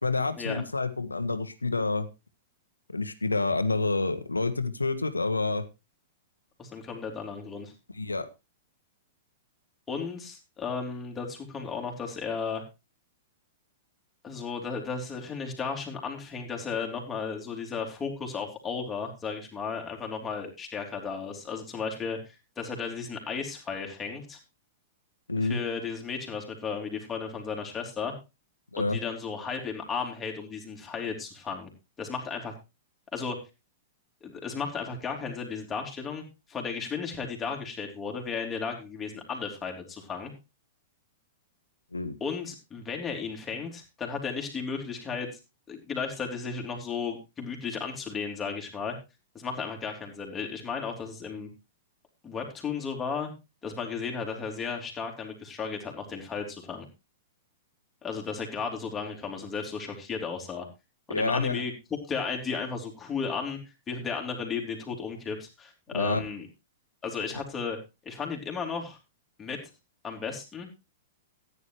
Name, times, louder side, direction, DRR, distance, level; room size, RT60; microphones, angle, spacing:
voice 1, 0.0-2.1 2.9-5.6 7.9-8.3 25.3-25.6 28.7-29.0 41.9-42.2 61.1-61.6 65.9-66.2, left 3 dB, 80° left, 11 dB, 1.3 m, -28 dB
voice 2, 6.6-7.7 9.9-12.6 14.2-22.2 22.6-24.4 25.4-28.1 28.8-31.7 32.0-32.5 33.1-33.4 34.2-36.2 36.5-40.3 42.2-45.3 45.7-49.0 49.3-51.5 52.2-53.3 53.6-56.9 58.0-60.7 61.1-61.7 62.1-63.6 63.9-66.4 67.0-67.8 68.0-69.0 69.4-69.6 70.0-70.7, left 5 dB, 15° left, 1 dB, 3.4 m, -34 dB
15.0 x 9.8 x 3.1 m, 0.27 s
figure-of-eight pair, 105°, 0 cm